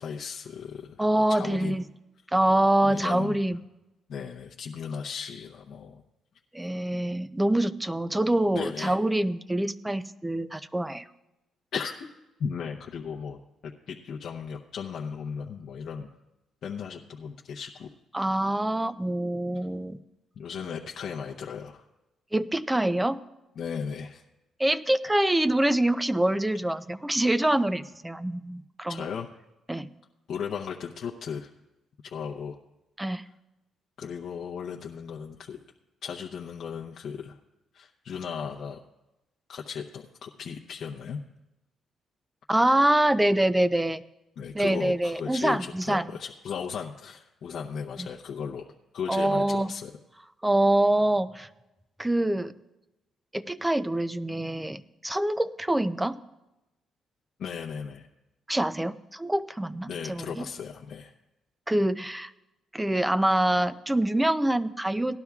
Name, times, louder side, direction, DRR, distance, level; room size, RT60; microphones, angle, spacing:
voice 1, 0.0-1.8 2.8-3.4 4.1-6.0 8.5-9.0 11.7-11.9 12.4-16.1 16.6-17.9 20.4-21.8 23.6-24.2 28.9-29.3 30.3-31.5 32.0-32.5 34.0-35.6 36.0-37.4 37.7-38.8 39.5-41.2 44.4-48.7 48.9-49.9 57.4-58.1 59.9-61.1, left 6 dB, 65° left, -2 dB, 0.7 m, -36 dB
voice 2, 1.0-1.8 2.3-3.6 6.5-11.1 18.1-20.0 22.3-23.2 24.6-29.1 29.7-29.9 33.0-33.2 42.5-44.0 44.5-46.0 48.0-48.1 49.1-49.7 50.4-51.5 52.0-52.5 53.3-56.2 58.5-60.5 61.7-62.3 62.7-65.2, right 1 dB, 10° right, 15 dB, 0.5 m, -25 dB
18.5 x 11.5 x 2.4 m, 0.97 s
cardioid pair, 90°, 0 cm